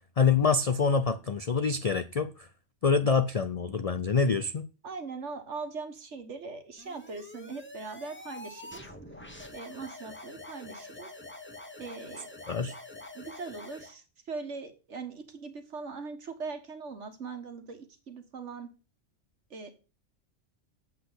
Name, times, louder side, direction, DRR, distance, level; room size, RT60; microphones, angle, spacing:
voice 1, 0.2-2.5 2.8-4.7 12.5-12.7, left 5 dB, 45° left, 0.5 m, -26 dB
voice 2, 4.8-8.9 9.5-11.1 11.8-12.4 13.1-18.7 19.5-19.7, right 4 dB, 70° right, 1.8 m, -41 dB
sound 1, 6.8-13.9, left 2 dB, 10° left, 1.1 m, -46 dB
8.1 x 6.1 x 8.0 m
omnidirectional pair, 1.3 m